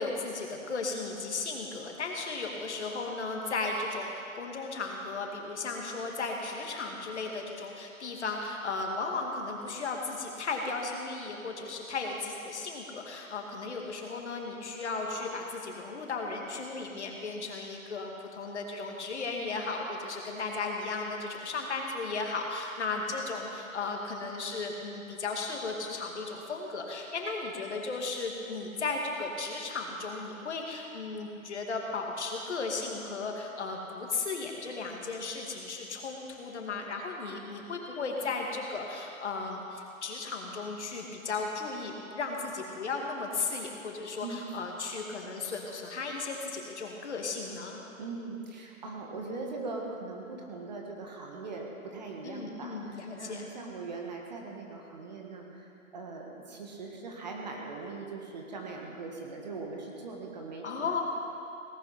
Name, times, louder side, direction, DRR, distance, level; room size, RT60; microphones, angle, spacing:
voice 1, 0.0-47.8 52.2-53.5 60.6-61.0, left 3 dB, 50° left, 1 dB, 2.4 m, -35 dB
voice 2, 48.0-60.6, right 3 dB, 30° right, 0 dB, 1.7 m, -40 dB
18.0 x 11.0 x 5.8 m, 2.6 s
hypercardioid pair, 170°, 42 cm